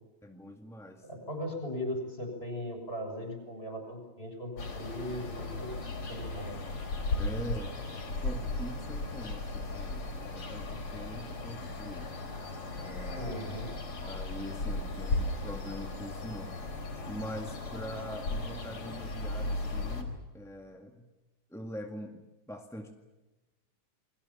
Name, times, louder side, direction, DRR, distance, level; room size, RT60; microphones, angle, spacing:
voice 1, 0.2-1.1 7.2-7.8 8.2-12.2 12.7-13.6 13.9-16.5 17.1-21.1 21.5-23.0, equal, ahead, 3 dB, 1.2 m, -43 dB
voice 2, 1.1-6.6 13.1-13.7, left 1 dB, 15° left, 4 dB, 7.1 m, -38 dB
sound 1, 4.6-20.0, left 2 dB, 45° left, 4.9 m, -36 dB
29.5 x 22.5 x 7.3 m, 1.1 s
omnidirectional pair, 3.6 m